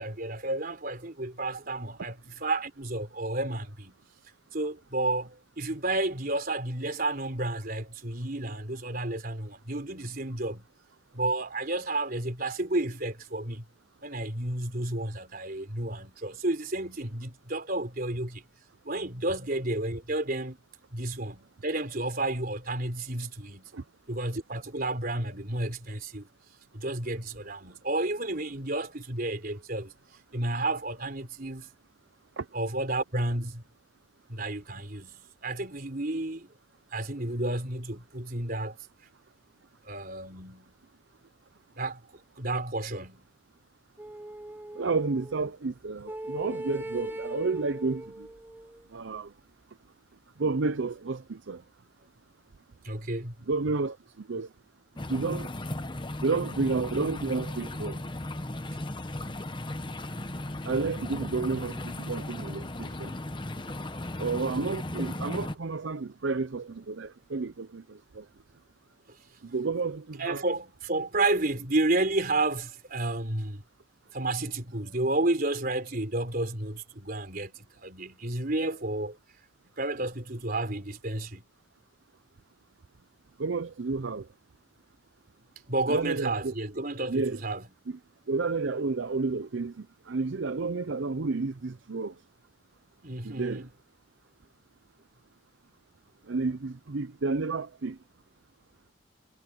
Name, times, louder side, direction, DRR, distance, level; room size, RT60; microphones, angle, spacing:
voice 1, 0.0-4.0 4.5-10.6 11.1-13.6 14.0-18.4 18.8-20.6 20.9-23.7 24.1-26.3 26.7-29.9 30.3-31.7 32.5-33.6 34.3-36.5 36.9-38.8 39.8-40.7 41.8-42.0 42.4-43.3 52.8-53.4 70.2-73.6 74.1-79.2 79.8-81.4 85.7-87.6 93.0-93.7, right 2 dB, 45° right, 3.9 m, -31 dB
sound 1, 44.0-45.5 46.0-48.8, right 1 dB, 10° right, 1.0 m, -40 dB
voice 2, 44.8-48.3 48.9-49.3 50.4-51.6 53.5-54.0 54.3-54.5 55.1-55.5 56.2-58.0 60.6-63.1 64.2-68.2 69.5-70.4 83.4-84.3 85.9-86.5 87.1-87.4 87.9-88.0 88.3-92.1 93.2-93.7 96.3-98.0, right 4 dB, 65° right, 0.6 m, -31 dB
sound 2, 55.0-65.5, left 1 dB, 25° left, 1.0 m, -36 dB
head